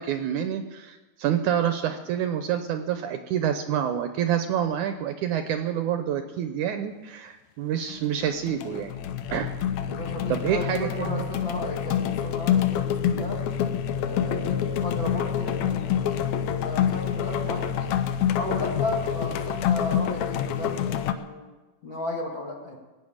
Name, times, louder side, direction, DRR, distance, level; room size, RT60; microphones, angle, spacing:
voice 1, 0.0-8.9 9.3-9.5 10.3-11.3, right 9 dB, 75° right, 7 dB, 2.0 m, -27 dB
sound 1, 7.9-8.2 8.5-21.1, left 9 dB, 75° left, 1.7 m, -27 dB
voice 2, 9.8-13.5 14.0-18.0 18.3-21.5 21.8-22.8, left 2 dB, 40° left, -1 dB, 2.1 m, -34 dB
18.0 x 8.1 x 8.7 m, 1.2 s
omnidirectional pair, 4.0 m